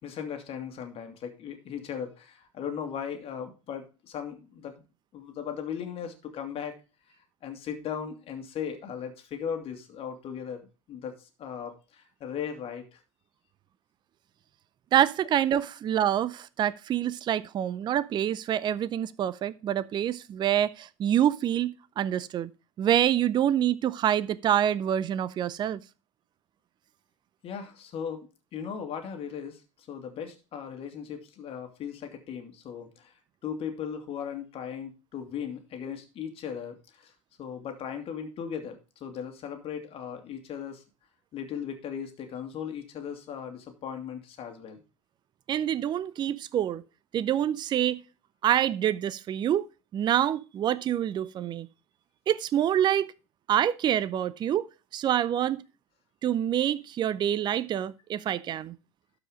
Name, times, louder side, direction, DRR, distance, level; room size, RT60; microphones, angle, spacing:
voice 1, 0.0-4.8 5.1-6.8 7.4-13.0 27.4-33.1 33.4-37.1 37.4-40.8 41.3-44.8, left 7 dB, 40° left, 2.4 m, -37 dB
voice 2, 14.9-22.5 22.8-25.8 45.5-46.8 47.1-48.0 48.4-49.7 49.9-51.7 52.3-53.1 53.5-55.6 56.2-58.8, right 10 dB, 30° right, 0.5 m, -26 dB
12.5 x 5.0 x 5.0 m
hypercardioid pair, 90°, 16 cm